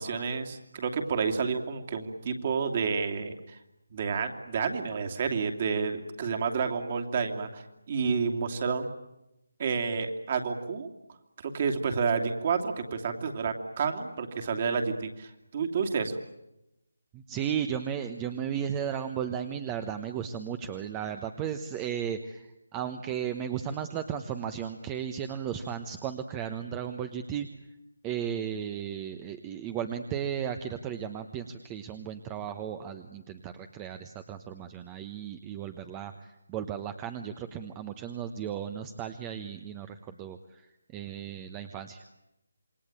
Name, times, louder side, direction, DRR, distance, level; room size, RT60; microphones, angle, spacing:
voice 1, 0.0-3.3 3.9-8.9 9.6-10.9 11.4-16.2, right 5 dB, 35° right, 5 dB, 2.8 m, -30 dB
voice 2, 17.1-27.5 28.0-42.0, right 8 dB, 15° right, 9 dB, 1.1 m, -35 dB
27.5 x 22.5 x 9.0 m, 0.90 s
figure-of-eight pair, 160°, 0 cm